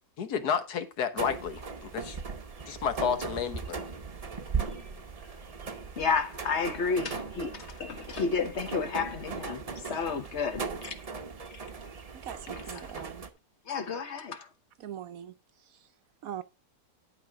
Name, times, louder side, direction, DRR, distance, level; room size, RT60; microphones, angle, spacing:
voice 1, 0.2-2.2 2.7-3.8, left 7 dB, 75° left, 1.6 m, -31 dB
sound 1, 1.2-13.3, right 5 dB, 35° right, 0.7 m, -38 dB
voice 2, 6.0-9.6 9.9-11.0 13.0-13.1 13.7-14.5, left 5 dB, 50° left, 1.1 m, -31 dB
voice 3, 12.1-13.3 14.8-15.3 15.7-15.9 16.2-16.4, right 10 dB, 65° right, 1.0 m, -41 dB
11.0 x 4.1 x 5.8 m
omnidirectional pair, 1.7 m